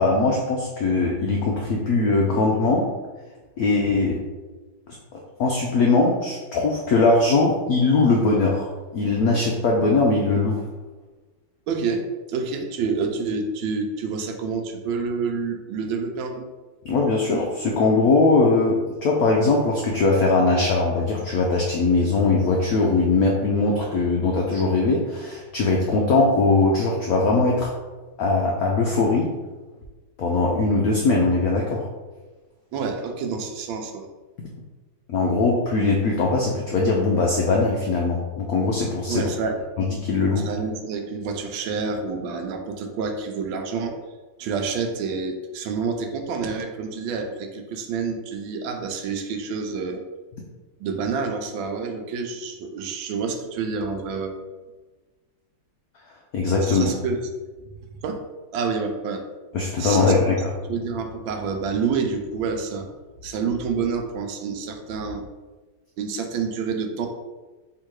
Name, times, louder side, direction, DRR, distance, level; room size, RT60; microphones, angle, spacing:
voice 1, 0.0-2.9 3.6-4.2 5.1-10.6 16.8-27.7 28.2-29.3 30.2-31.9 35.1-39.3 39.8-40.5 56.3-56.9 59.5-60.5, left 3 dB, 80° left, -1 dB, 0.8 m, -21 dB
voice 2, 11.7-12.0 12.3-16.5 32.7-34.1 39.1-39.6 40.4-43.9 44.4-50.0 50.8-54.4 56.6-57.2 58.0-58.2 58.5-59.2 59.8-60.3 60.6-62.9 63.2-65.3 66.0-67.1, right 5 dB, 80° right, 4 dB, 1.4 m, -28 dB
3.7 x 2.9 x 4.5 m, 1.3 s
omnidirectional pair, 2.2 m